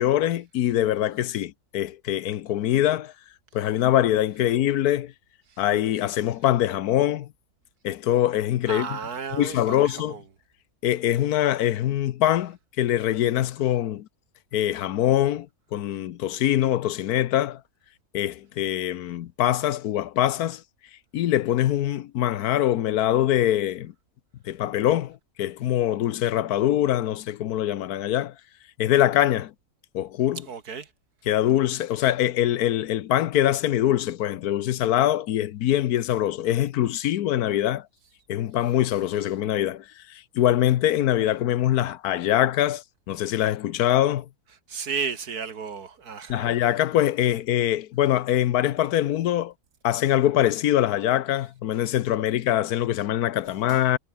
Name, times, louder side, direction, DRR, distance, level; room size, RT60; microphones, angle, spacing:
voice 1, 0.0-3.1 3.5-5.1 5.6-7.3 7.8-9.0 9.3-10.1 10.8-14.1 14.5-17.6 18.1-20.6 21.1-23.9 24.4-28.3 28.8-29.5 29.9-30.4 31.3-37.9 38.3-44.3 46.3-49.5 49.8-54.0, left 12 dB, 85° left, 1.3 m, -23 dB
voice 2, 8.7-10.2 30.5-30.9 44.7-46.6 53.7-53.8, right 6 dB, 85° right, 2.5 m, -33 dB
omnidirectional pair, 1.6 m